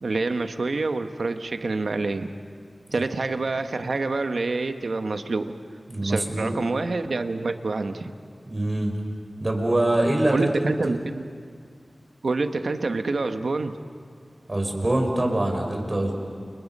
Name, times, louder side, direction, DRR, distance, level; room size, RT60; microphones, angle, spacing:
voice 1, 0.0-2.3 2.9-5.5 6.0-8.1 10.3-11.2 12.2-13.8, right 3 dB, 80° right, 7 dB, 1.2 m, -27 dB
voice 2, 5.9-6.6 8.4-9.0 9.4-11.0 14.5-16.1, right 1 dB, 35° right, 2 dB, 4.6 m, -24 dB
30.0 x 29.5 x 5.5 m, 2.1 s
wide cardioid pair, 80°, 0 cm